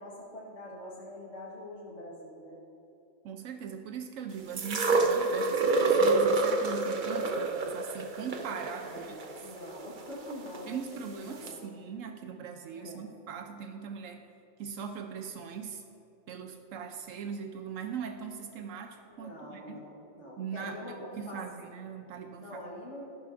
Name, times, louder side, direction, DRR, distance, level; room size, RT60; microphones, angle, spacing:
voice 1, 0.0-2.6 8.9-11.7 12.7-13.1 19.1-21.4 22.4-23.1, left 1 dB, 70° left, -5 dB, 1.8 m, -44 dB
voice 2, 3.2-9.1 10.7-14.2 14.6-15.8 16.3-19.8 20.4-22.5, right 7 dB, 80° right, 5 dB, 1.0 m, -40 dB
sound 1, 4.6-10.6 11.5-11.6, right 3 dB, 45° right, 0.8 m, -27 dB
13.5 x 11.5 x 2.5 m, 3.0 s
omnidirectional pair, 1.3 m